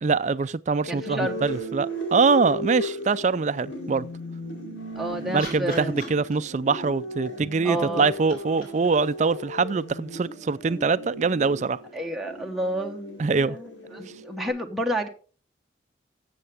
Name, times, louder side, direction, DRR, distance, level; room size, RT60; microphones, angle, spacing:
voice 1, 0.0-4.1 5.3-11.8 13.2-13.6, right 4 dB, 40° right, 0.4 m, -24 dB
sound 1, 0.8-14.5, right 1 dB, 85° left, 4.6 m, -36 dB
voice 2, 0.9-1.4 5.0-5.9 7.6-8.1 11.9-15.1, right 1 dB, ahead, 0.9 m, -30 dB
sound 2, 2.5-3.4 4.8-6.7 7.8-10.4 12.4-12.5, left 1 dB, 50° left, 4.2 m, -44 dB
13.5 x 7.8 x 3.4 m
head